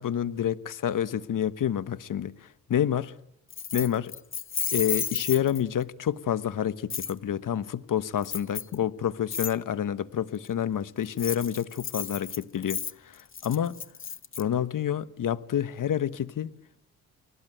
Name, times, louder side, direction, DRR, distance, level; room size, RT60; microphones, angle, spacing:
voice 1, 0.0-3.1 3.7-4.1 4.7-13.7 14.4-16.5, left 9 dB, 60° left, 1.3 m, -28 dB
Keys jangling, 3.5-5.8 6.9-7.1 8.2-8.8 9.3-9.5 11.0-14.4, left 6 dB, 35° left, 1.1 m, -33 dB
28.5 x 19.5 x 9.1 m
supercardioid pair, 50°, 37 cm